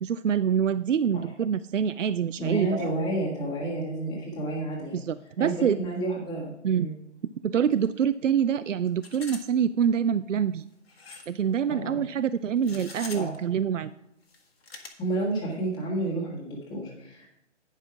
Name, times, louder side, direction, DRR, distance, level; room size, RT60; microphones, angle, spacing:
voice 1, 0.0-2.9 4.9-5.8 6.6-6.9 7.4-10.6 11.3-13.9, right 8 dB, 80° right, 13 dB, 0.5 m, -26 dB
voice 2, 2.4-5.0 5.4-6.9 11.7-12.1 13.1-13.3 15.0-17.3, right 2 dB, 10° left, -4 dB, 1.7 m, -30 dB
sound 1, 7.7-7.9 8.1-8.2 8.9-9.5 9.8-9.9 10.9-11.4 12.6-13.4 14.2-14.9, left 4 dB, 55° left, 1.6 m, -43 dB
9.7 x 5.6 x 5.8 m, 0.80 s
figure-of-eight pair, 140°, 37 cm